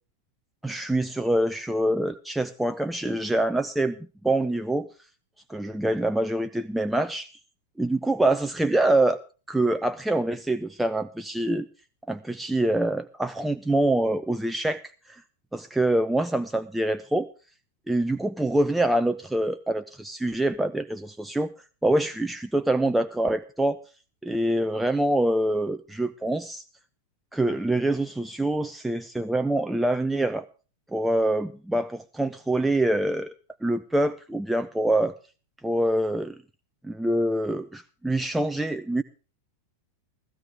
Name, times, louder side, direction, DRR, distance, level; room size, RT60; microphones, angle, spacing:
voice 1, 0.6-4.9 5.5-7.3 7.8-9.2 9.5-11.7 12.1-14.8 15.1-15.2 15.5-17.3 17.9-21.5 21.8-23.8 24.2-26.6 27.3-30.5 30.9-33.3 33.6-35.1 35.6-36.4 36.8-39.0, right 1 dB, 5° right, 9 dB, 0.6 m, -25 dB
15.5 x 15.0 x 3.5 m, 0.36 s
figure-of-eight pair, 90°, 0 cm